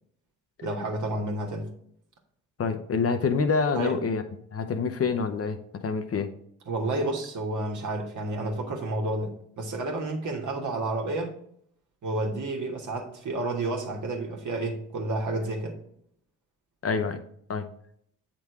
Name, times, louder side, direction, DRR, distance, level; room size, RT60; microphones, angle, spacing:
voice 1, 0.6-1.7 3.7-4.0 6.6-11.3 12.0-15.8, right 2 dB, 55° right, 2 dB, 1.6 m, -30 dB
voice 2, 2.6-4.2 4.5-6.3 16.8-17.2 17.5-17.7, left 5 dB, 40° left, 8 dB, 0.7 m, -26 dB
7.8 x 3.8 x 4.7 m, 0.68 s
hypercardioid pair, 50°, 36 cm